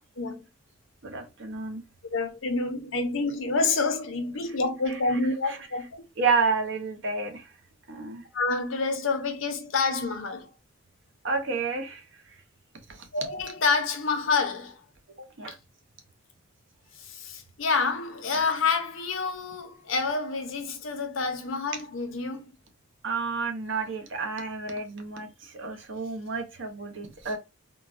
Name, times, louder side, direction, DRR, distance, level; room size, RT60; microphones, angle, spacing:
voice 1, 1.0-1.8 5.4-5.6 6.2-7.5 7.9-8.2 11.2-12.3 12.9-13.1 15.2-15.6 23.0-27.4, right 4 dB, 65° right, 0.8 m, -30 dB
voice 2, 2.1-6.0 8.3-10.5 13.1-14.8 15.5-15.6 17.0-22.5, left 4 dB, 75° left, 0.7 m, -28 dB
3.8 x 2.2 x 2.5 m
head